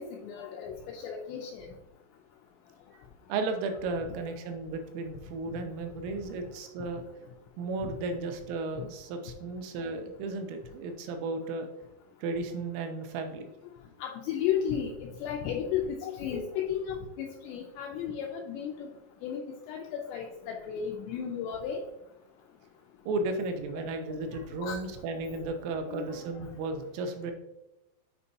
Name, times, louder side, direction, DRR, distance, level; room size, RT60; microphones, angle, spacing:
voice 1, 0.0-1.7 14.0-18.9 19.2-19.4 19.7-21.8 24.1-24.3 24.6-24.8 25.9-26.2, left 8 dB, 90° left, 1 dB, 2.4 m, -34 dB
voice 2, 3.3-7.0 7.6-11.7 12.2-13.5 23.1-27.3, right 3 dB, 85° right, 5 dB, 3.3 m, -34 dB
9.6 x 4.5 x 2.7 m, 0.95 s
omnidirectional pair, 5.6 m